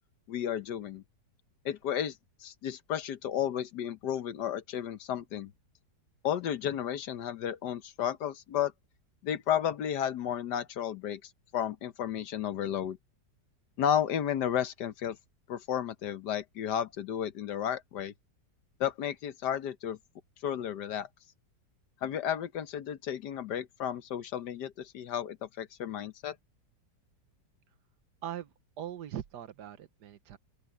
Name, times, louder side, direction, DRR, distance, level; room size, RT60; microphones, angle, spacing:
voice 1, 0.3-1.0 1.6-2.2 2.4-5.5 6.2-8.7 9.2-13.0 13.8-15.2 15.5-18.1 18.8-20.0 20.4-21.1 22.0-26.4, left 9 dB, 70° left, 1.5 m, -33 dB
voice 2, 28.2-30.4, right 10 dB, 70° right, 1.5 m, -41 dB
open air
omnidirectional pair, 1.9 m